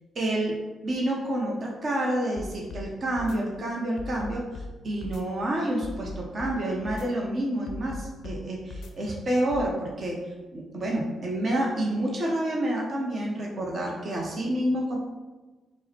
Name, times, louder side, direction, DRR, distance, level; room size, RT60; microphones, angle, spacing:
voice 1, 0.1-0.6 0.8-4.4 4.8-10.2 10.5-15.0, right 1 dB, 50° right, -2 dB, 0.8 m, -28 dB
sound 1, 2.4-2.9 3.2-3.4 4.0-4.7 5.0-5.2 5.8-6.5 6.9-7.1 7.7-8.4 8.7-8.9 9.5-9.7, left 3 dB, 65° left, 0.5 m, -38 dB
4.6 x 2.1 x 4.2 m, 1.2 s
hypercardioid pair, 45°, 0 cm